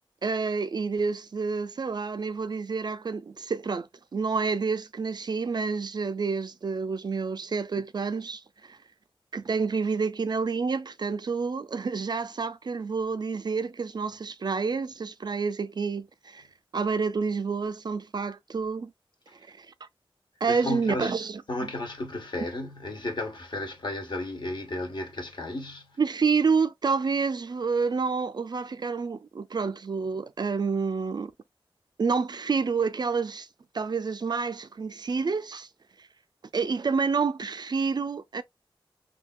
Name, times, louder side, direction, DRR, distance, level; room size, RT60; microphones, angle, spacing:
voice 1, 0.2-8.8 9.3-16.4 16.7-18.9 19.5-19.7 20.4-21.4 26.0-31.3 32.0-33.5 33.7-35.7 36.5-38.4, right 5 dB, 50° right, 0.4 m, -28 dB
voice 2, 20.5-21.2 21.5-26.0, left 2 dB, 55° left, 1.3 m, -34 dB
3.5 x 2.7 x 2.3 m
wide cardioid pair, 105°, 9 cm